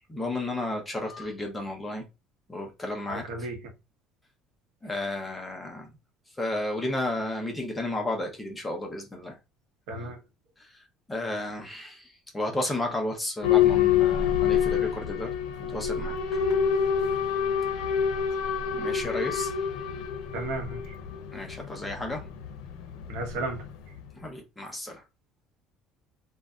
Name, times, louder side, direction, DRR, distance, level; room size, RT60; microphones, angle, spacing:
voice 1, 0.1-2.1 2.5-3.5 4.8-5.9 6.4-9.3 11.1-12.0 12.3-15.3 15.7-16.4 18.7-19.5 21.3-22.3 24.2-25.0, left 1 dB, 10° left, 0.6 m, -33 dB
voice 2, 3.1-3.6 9.9-10.2 20.3-20.9 23.1-23.6, right 2 dB, 75° right, 0.9 m, -33 dB
Boat Water vehicle / Alarm, 13.4-24.1, left 8 dB, 85° left, 0.6 m, -27 dB
2.6 x 2.1 x 3.5 m
cardioid pair, 180°, 0 cm